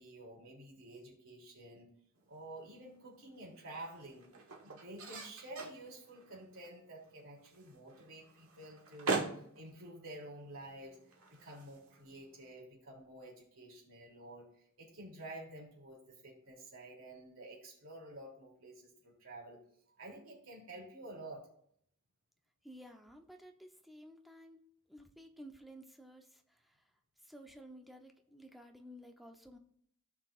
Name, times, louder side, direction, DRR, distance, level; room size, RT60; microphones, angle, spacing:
voice 1, 0.0-1.9 2.3-4.3 4.6-9.2 9.5-19.6 20.0-21.5, right 1 dB, 70° right, -2 dB, 3.1 m, -50 dB
sound 1, 2.1-12.5, right 3 dB, 85° right, 1.5 m, -44 dB
voice 2, 22.6-24.6 24.9-26.8 27.2-29.6, equal, ahead, 3 dB, 0.8 m, -54 dB
16.5 x 5.8 x 2.5 m, 0.67 s
head